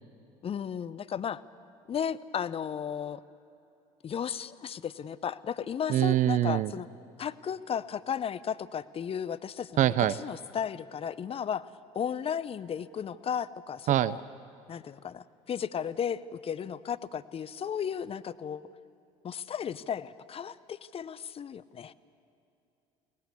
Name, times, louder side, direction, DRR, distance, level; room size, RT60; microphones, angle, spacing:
voice 1, 0.4-1.4 1.9-3.2 4.0-6.9 7.2-11.7 11.9-14.2 14.7-18.7 19.2-21.9, left 8 dB, 35° left, 17 dB, 0.7 m, -34 dB
voice 2, 5.9-6.7 9.8-10.1 13.9-14.2, right 13 dB, 50° right, 18 dB, 0.5 m, -24 dB
22.5 x 18.5 x 8.4 m, 2.8 s
hypercardioid pair, 65°, 16 cm